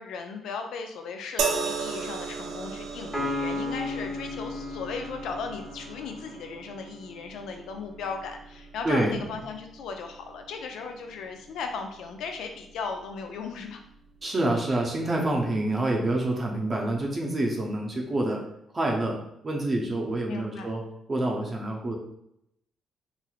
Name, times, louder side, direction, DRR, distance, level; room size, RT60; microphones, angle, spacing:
voice 1, 0.0-13.8 15.4-15.6 20.3-20.7, left 5 dB, 80° left, 4 dB, 0.4 m, -37 dB
sound 1, 1.4-14.7 15.7-15.8, right 5 dB, 85° right, 0.4 m, -38 dB
Piano, 3.1-6.7, left 2 dB, 5° left, 1.0 m, -34 dB
voice 2, 8.8-9.3 14.2-18.4 18.7-19.2 19.4-20.8 21.1-21.9, right 1 dB, 35° right, -1 dB, 0.6 m, -27 dB
3.1 x 2.6 x 2.4 m, 0.77 s
cardioid pair, 90°, 0 cm